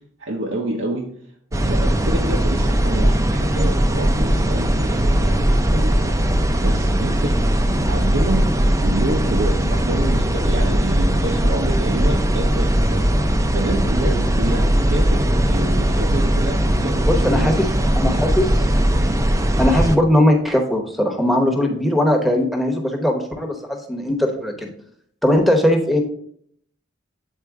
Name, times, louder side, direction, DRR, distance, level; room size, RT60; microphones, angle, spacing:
voice 1, 0.2-1.1 1.5-7.6 7.8-8.5 8.8-17.7, right 2 dB, 70° right, 0 dB, 0.7 m, -28 dB
sound 1, 1.5-20.0, right 1 dB, 15° right, 0.4 m, -19 dB
voice 2, 17.1-17.7 17.9-18.6 19.6-24.7 25.2-26.0, left 1 dB, ahead, 3 dB, 0.9 m, -19 dB
8.1 x 4.2 x 3.6 m, 0.64 s
head